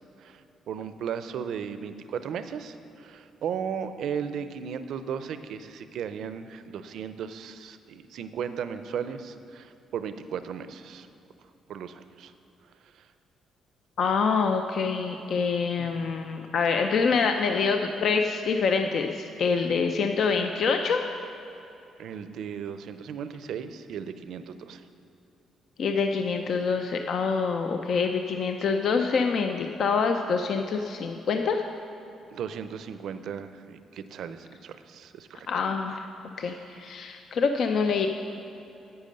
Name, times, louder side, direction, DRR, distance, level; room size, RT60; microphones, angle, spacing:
voice 1, 0.7-11.1 11.7-12.3 13.0-13.1 15.8-16.1 22.0-24.8 32.3-35.5 36.5-36.8, right 7 dB, 75° right, 11 dB, 0.5 m, -36 dB
voice 2, 14.0-21.1 25.8-31.6 35.5-36.1 36.4-38.1, left 5 dB, 65° left, 5 dB, 0.5 m, -26 dB
10.5 x 8.4 x 5.3 m, 2.9 s
cardioid pair, 90°, 0 cm